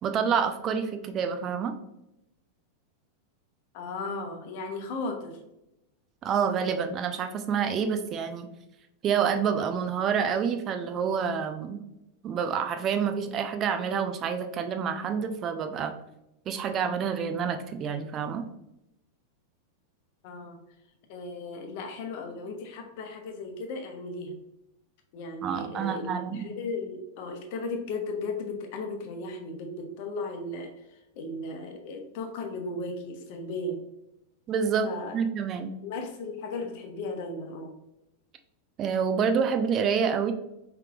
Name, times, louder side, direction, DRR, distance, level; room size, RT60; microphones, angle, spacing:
voice 1, 0.0-1.7 6.2-8.5 9.0-11.8 12.2-15.9 16.5-18.5 25.4-26.5 34.5-34.9 35.1-35.7 38.8-40.3, right 7 dB, 30° right, 7 dB, 0.5 m, -28 dB
voice 2, 3.7-5.4 20.2-20.6 21.1-24.4 25.1-30.7 31.2-33.8 34.8-35.1 35.8-37.7, left 2 dB, 50° left, 4 dB, 0.9 m, -36 dB
5.6 x 3.3 x 2.4 m, 0.87 s
figure-of-eight pair, 90°, 0 cm